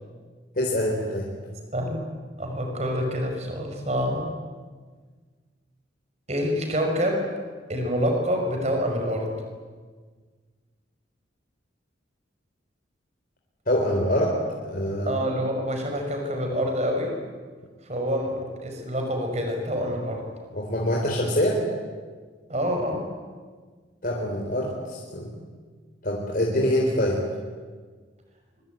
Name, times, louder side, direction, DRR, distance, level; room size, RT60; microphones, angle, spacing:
voice 1, 0.6-1.3 13.7-15.3 20.5-21.6 24.0-25.3 26.0-27.2, equal, 45° left, -2 dB, 4.1 m, -25 dB
voice 2, 1.7-2.0 2.4-4.3 6.3-7.3 7.7-9.3 15.1-17.1 17.9-20.2 22.5-23.0, equal, 35° right, 3 dB, 5.8 m, -27 dB
25.0 x 24.5 x 9.2 m, 1.5 s
head